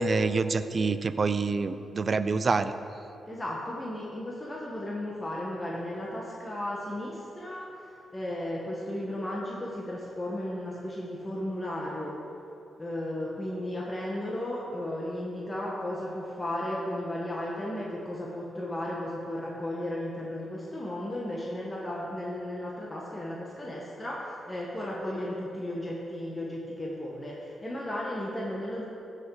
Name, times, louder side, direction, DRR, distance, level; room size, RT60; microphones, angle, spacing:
voice 1, 0.0-2.7, right 4 dB, 45° right, 12 dB, 0.5 m, -26 dB
voice 2, 3.3-12.2 12.8-28.8, left 1 dB, 20° left, -4 dB, 1.6 m, -35 dB
15.0 x 6.5 x 5.0 m, 2.8 s
cardioid pair, 75°, 0 cm